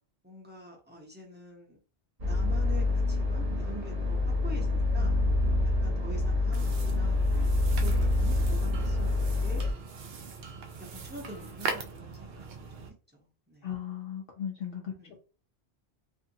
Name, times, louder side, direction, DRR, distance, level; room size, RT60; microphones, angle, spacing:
voice 1, 0.2-1.8 2.2-5.2 5.6-7.5 7.8-10.2 10.8-13.8 15.0-15.2, right 1 dB, 10° right, -2 dB, 0.7 m, -46 dB
sound 1, 2.2-9.7, left 2 dB, 40° right, 0.8 m, -27 dB
sound 2, 6.5-12.9, right 4 dB, 70° right, 0.8 m, -40 dB
voice 2, 13.6-14.9, left 9 dB, 65° left, 0 dB, 0.8 m, -36 dB
2.5 x 2.4 x 2.7 m, 0.35 s
omnidirectional pair, 1.1 m